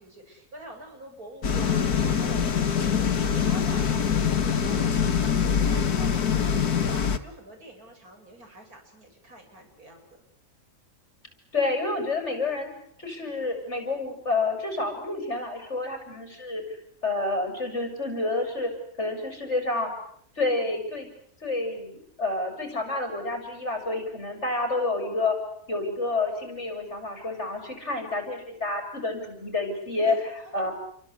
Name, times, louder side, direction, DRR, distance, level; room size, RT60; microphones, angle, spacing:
voice 1, 0.0-10.2 30.0-30.2 30.4-30.5, right 1 dB, 70° right, 3 dB, 7.6 m, -46 dB
sound 1, 1.4-7.2, left 7 dB, 80° left, 2.0 m, -24 dB
voice 2, 11.5-12.7 13.0-16.6 17.0-18.7 19.0-19.9 20.4-21.1 21.4-25.4 25.7-30.1 30.5-30.7, left 3 dB, 45° left, 5 dB, 7.2 m, -29 dB
29.5 x 23.5 x 8.4 m, 0.69 s
omnidirectional pair, 1.6 m